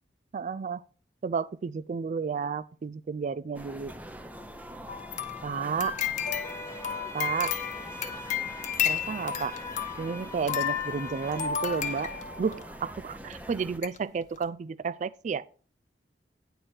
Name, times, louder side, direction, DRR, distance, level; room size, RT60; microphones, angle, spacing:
voice 1, 0.3-0.8 1.2-3.9 5.4-6.0 7.1-7.6 8.8-9.6 10.0-15.4, right 5 dB, 45° right, 0.3 m, -32 dB
sound 1, 3.5-13.8, equal, 10° right, 0.7 m, -44 dB
sound 2, 4.9-12.6 13.3-13.4 13.8-14.0 14.3-14.4, left 8 dB, 45° left, 0.9 m, -33 dB
sound 3, 6.4-11.5, left 1 dB, 20° left, 0.9 m, -43 dB
9.8 x 4.6 x 6.3 m
head